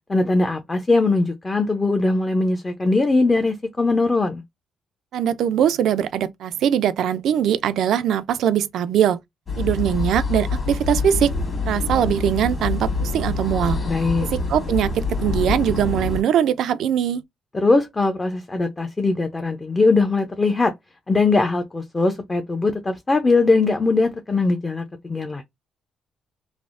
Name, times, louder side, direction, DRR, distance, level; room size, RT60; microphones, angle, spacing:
voice 1, 0.1-4.4 13.9-14.3 17.5-20.7 21.1-25.4, left 3 dB, 25° left, 0.5 m, -20 dB
voice 2, 5.1-9.2 9.6-11.3 11.6-13.8 14.2-17.2, right 9 dB, 75° right, 0.3 m, -21 dB
sound 1, 9.5-16.2, left 3 dB, 40° left, 1.4 m, -26 dB
3.3 x 2.0 x 2.4 m
cardioid pair, 90°, 0 cm